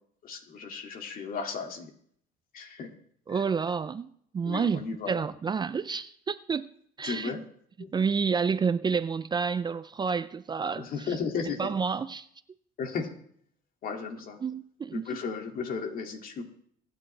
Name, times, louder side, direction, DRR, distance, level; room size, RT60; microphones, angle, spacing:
voice 1, 0.2-1.9 2.5-2.9 3.3-3.4 4.4-5.2 7.0-7.4 7.8-7.9 10.8-11.7 12.8-13.2 13.8-14.4 14.9-16.4, left 5 dB, 55° left, 2.3 m, -35 dB
voice 2, 3.3-6.7 7.0-7.3 7.9-10.8 11.6-12.3 14.4-15.0, right 5 dB, 25° right, 0.4 m, -29 dB
22.5 x 9.3 x 3.3 m
cardioid pair, 110°, 17 cm